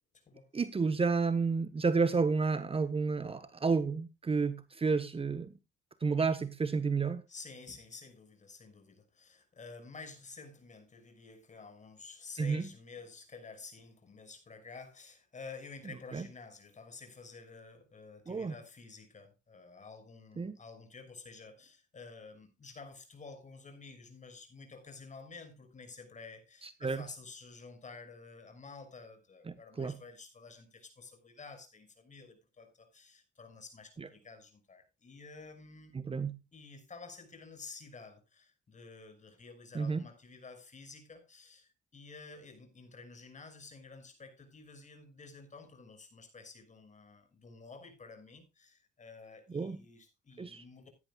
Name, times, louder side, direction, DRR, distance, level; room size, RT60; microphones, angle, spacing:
voice 1, 0.5-5.5 6.0-7.2 12.4-12.7 16.1-16.3 18.3-18.5 20.4-20.6 26.8-27.1 29.5-30.0 34.0-34.1 35.9-36.3 39.7-40.0 49.5-49.8 50.4-50.6, right 4 dB, 30° right, 1.3 m, -31 dB
voice 2, 7.3-35.9 36.5-50.9, left 4 dB, 40° left, 6.1 m, -51 dB
17.0 x 12.0 x 2.4 m
cardioid pair, 90°, 20 cm